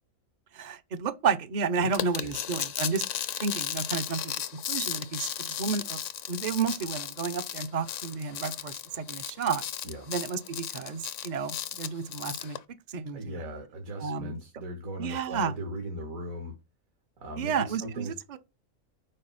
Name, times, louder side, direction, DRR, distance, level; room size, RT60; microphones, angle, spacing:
voice 1, 0.5-3.0 3.4-6.0 6.3-9.6 10.1-12.6 12.9-13.4 14.0-14.4 15.0-15.5 17.4-18.4, right 5 dB, 45° right, 0.6 m, -31 dB
voice 2, 1.8-2.3 9.8-10.1 13.1-16.5 17.2-18.1, right 1 dB, 75° right, 1.9 m, -38 dB
sound 1, 1.9-12.6, left 10 dB, 70° left, 1.0 m, -35 dB
6.7 x 4.8 x 5.7 m
omnidirectional pair, 1.4 m